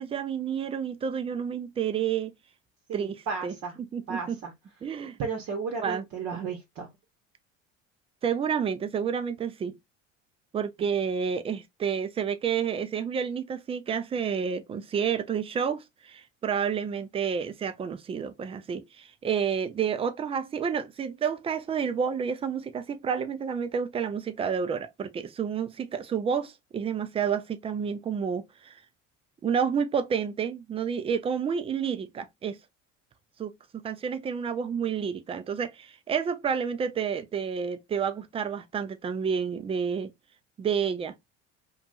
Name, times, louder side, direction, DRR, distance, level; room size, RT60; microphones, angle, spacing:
voice 1, 0.0-2.3 2.9-3.5 3.9-4.4 4.8-5.2 5.8-6.0 8.2-9.8 10.5-28.7 29.4-32.6 33.4-40.1 40.6-41.1, right 7 dB, 15° right, 0.3 m, -30 dB
voice 2, 2.9-3.8 4.1-4.5 5.2-6.9, right 5 dB, 45° right, 0.8 m, -34 dB
2.8 x 2.5 x 2.3 m
hypercardioid pair, 70°, 37 cm